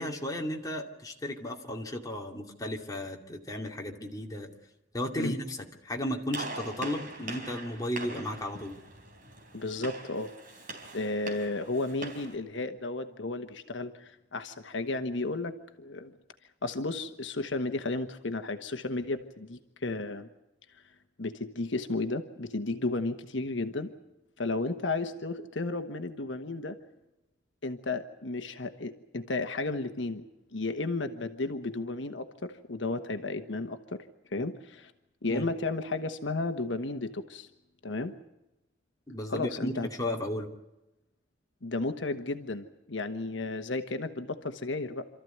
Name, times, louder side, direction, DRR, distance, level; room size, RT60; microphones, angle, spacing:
voice 1, 0.0-4.5 4.9-5.6 5.8-8.8 35.3-35.4 39.1-40.5, left 1 dB, 20° left, 1 dB, 2.5 m, -34 dB
Gunshot gunfire, 6.3-12.3, right 2 dB, 50° right, 4.1 m, -42 dB
voice 2, 9.5-10.3 10.9-16.1 16.6-20.3 20.7-20.8 21.2-23.9 24.4-26.8 27.6-30.2 30.5-34.0 34.3-34.9 35.2-37.5 37.8-38.1 39.3-39.9 41.6-45.1, left 2 dB, 75° left, 7 dB, 1.3 m, -33 dB
27.5 x 14.0 x 9.3 m, 0.97 s
head